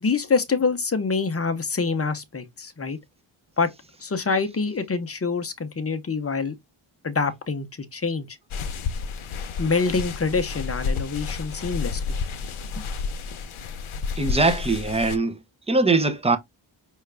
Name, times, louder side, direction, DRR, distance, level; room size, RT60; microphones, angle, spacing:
voice 1, 0.0-3.0 3.6-3.7 4.0-6.5 7.0-8.4 9.6-12.0, left 4 dB, 30° left, 0.7 m, -25 dB
sound 1, 8.5-15.2, left 5 dB, 75° left, 0.7 m, -30 dB
voice 2, 14.2-15.4 15.7-16.4, right 3 dB, 15° right, 0.6 m, -21 dB
5.5 x 2.4 x 3.3 m
wide cardioid pair, 135°, 49 cm